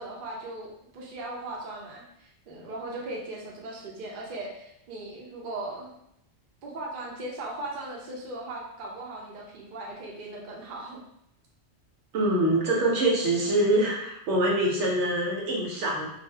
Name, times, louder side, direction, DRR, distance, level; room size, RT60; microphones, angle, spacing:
voice 1, 0.0-5.9 6.6-11.0, right 2 dB, 55° right, -2 dB, 0.7 m, -38 dB
voice 2, 12.1-16.1, right 1 dB, 75° right, -2 dB, 1.0 m, -24 dB
2.5 x 2.0 x 3.2 m, 0.78 s
omnidirectional pair, 1.2 m